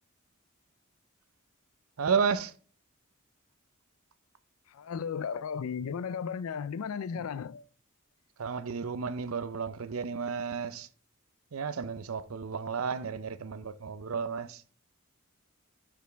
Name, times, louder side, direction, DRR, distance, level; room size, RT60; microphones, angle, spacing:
voice 1, 2.0-2.5 8.4-10.9 11.5-14.6, right 6 dB, 80° right, 0.6 m, -32 dB
voice 2, 4.7-7.6, left 6 dB, 85° left, 0.4 m, -35 dB
11.5 x 5.2 x 3.4 m
head